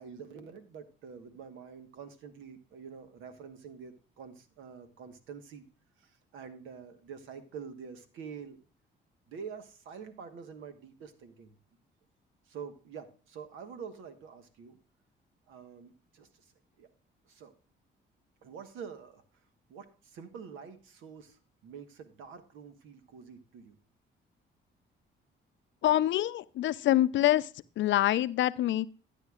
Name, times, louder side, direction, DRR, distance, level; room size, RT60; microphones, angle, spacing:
voice 1, 0.0-5.6 6.0-8.6 9.3-11.5 12.5-14.8 15.5-16.5 16.8-16.9 17.3-17.5 18.4-19.2 19.7-23.7, right 6 dB, 85° right, 1.3 m, -47 dB
voice 2, 25.8-27.5 27.8-28.9, left 13 dB, 70° left, 0.5 m, -25 dB
12.5 x 9.4 x 2.3 m
cardioid pair, 90°, 20 cm